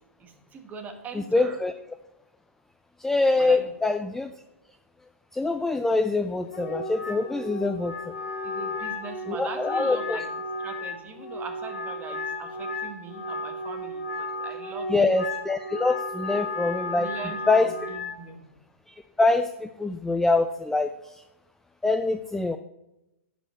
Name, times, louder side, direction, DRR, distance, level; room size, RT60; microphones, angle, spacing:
voice 1, 0.2-1.6 3.3-3.7 4.0-4.1 8.4-10.3 10.6-15.2 17.0-18.5, right 5 dB, 20° right, 5 dB, 1.7 m, -41 dB
voice 2, 1.1-1.7 3.0-4.3 5.3-7.9 9.3-10.2 14.9-17.1 17.5-17.7 19.2-20.9 21.8-22.6, left 3 dB, 5° left, 9 dB, 0.4 m, -24 dB
Wind instrument woodwind instrument, 6.5-18.2, left 2 dB, 60° left, 2.9 m, -34 dB
10.5 x 5.2 x 7.2 m, 0.93 s
figure-of-eight pair, 115°, 8 cm